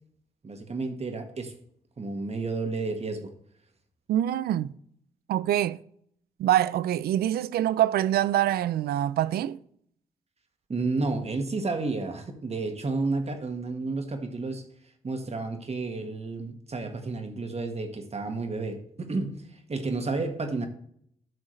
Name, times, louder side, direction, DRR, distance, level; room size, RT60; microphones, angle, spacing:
voice 1, 0.4-1.5 2.0-3.3 10.7-14.6 15.0-20.7, right 3 dB, 40° right, 1.7 m, -31 dB
voice 2, 4.1-4.7 5.3-5.8 6.4-9.6, right 12 dB, 75° right, 0.4 m, -25 dB
12.5 x 6.2 x 3.2 m
supercardioid pair, 45°, 16 cm